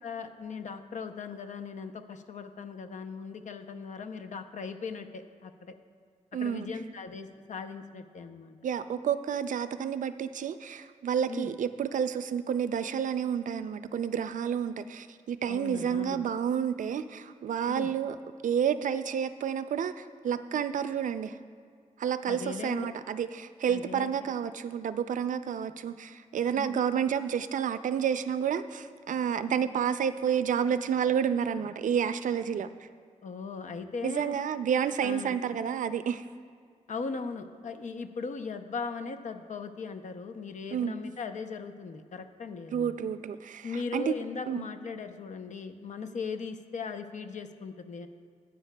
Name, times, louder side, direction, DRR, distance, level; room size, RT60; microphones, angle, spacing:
voice 1, 0.0-5.7 6.4-8.5 11.3-11.5 15.5-16.3 17.7-17.9 22.2-22.9 23.7-24.1 26.5-26.8 33.2-34.4 35.0-35.4 36.9-42.9 43.6-48.1, left 5 dB, 65° left, 8 dB, 0.6 m, -38 dB
voice 2, 6.3-6.7 8.6-18.2 18.4-21.4 22.0-32.7 34.0-36.2 40.7-41.0 42.7-44.2 44.5-44.7, right 8 dB, 75° right, 12 dB, 0.4 m, -30 dB
17.0 x 9.1 x 2.2 m, 2.1 s
wide cardioid pair, 165°, 13 cm